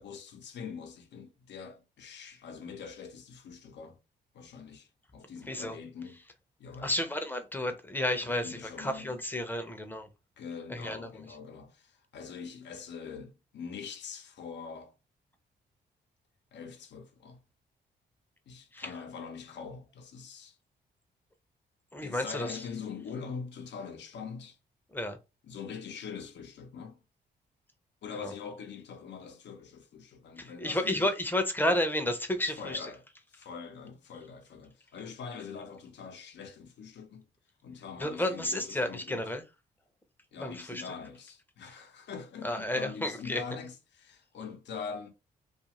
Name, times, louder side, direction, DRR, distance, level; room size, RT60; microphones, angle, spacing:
voice 1, 0.0-4.0 4.3-6.2 6.6-6.9 8.2-9.2 10.4-14.9 16.5-17.4 18.5-20.6 22.0-24.6 25.4-27.0 28.0-31.1 32.6-33.0 33.3-37.3 37.6-39.3 40.3-45.1, left 6 dB, 75° left, 0.7 m, -43 dB
voice 2, 5.5-5.8 6.8-10.1 10.7-11.2 18.7-18.9 21.9-22.6 24.9-25.2 28.2-28.3 30.4-32.9 38.0-39.4 40.4-40.8 42.4-43.4, left 1 dB, 10° left, 0.7 m, -32 dB
2.4 x 2.4 x 2.9 m
cardioid pair, 75°, 18 cm